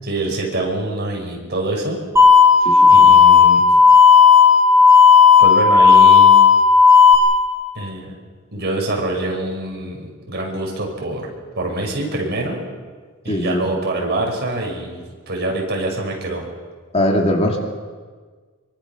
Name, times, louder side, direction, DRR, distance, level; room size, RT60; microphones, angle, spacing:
voice 1, 0.0-2.0 2.9-3.7 5.4-6.3 7.7-8.1 8.5-11.3 11.6-12.6 13.2-16.4, right 2 dB, 50° right, 0 dB, 6.2 m, -25 dB
sound 1, 2.2-7.2, left 6 dB, 15° right, 6.7 m, -10 dB
voice 2, 2.6-3.1 13.3-13.7 16.9-17.6, left 1 dB, 30° left, 1 dB, 2.6 m, -20 dB
26.0 x 24.0 x 6.2 m, 1.5 s
head